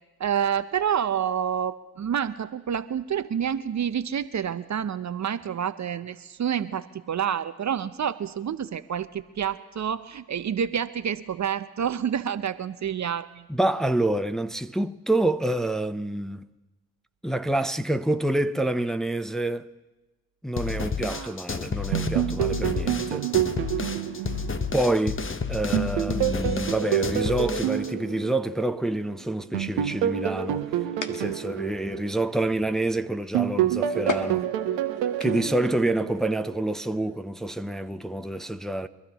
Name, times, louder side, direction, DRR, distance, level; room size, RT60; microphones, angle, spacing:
voice 1, 0.2-13.5 21.1-21.4, right 8 dB, 40° right, 0.7 m, -28 dB
voice 2, 13.5-16.5 17.2-19.7 20.4-23.3 24.7-25.2 25.5-30.6 31.1-34.5 35.2-38.9, right 1 dB, ahead, 0.8 m, -27 dB
sound 1, 20.6-27.9, left 5 dB, 30° left, 1.1 m, -31 dB
sound 2, 21.9-25.3 25.7-29.0 29.5-32.9 33.3-36.6, right 11 dB, 80° right, 1.2 m, -28 dB
sound 3, 30.2-35.7, left 5 dB, 45° left, 1.6 m, -39 dB
25.0 x 13.0 x 3.0 m
hypercardioid pair, 45°, 42 cm